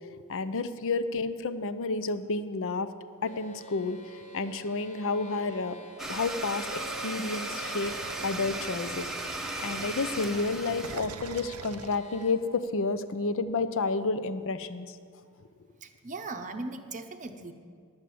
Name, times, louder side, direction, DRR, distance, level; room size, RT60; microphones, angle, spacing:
voice 1, 0.3-2.9 3.2-4.0 4.3-5.8 6.1-7.9 8.2-9.1 9.6-15.0, left 3 dB, 60° left, 13 dB, 0.6 m, -30 dB
sound 1, 3.2-12.3, right 2 dB, 35° left, 1.3 m, -47 dB
Domestic sounds home sounds, 6.0-11.0, right 1 dB, ahead, 0.8 m, -36 dB
sound 2, 7.9-12.6, right 5 dB, 75° right, 0.6 m, -44 dB
voice 2, 15.8-17.5, right 3 dB, 35° right, 6 dB, 0.7 m, -38 dB
10.5 x 8.3 x 7.7 m, 2.1 s
head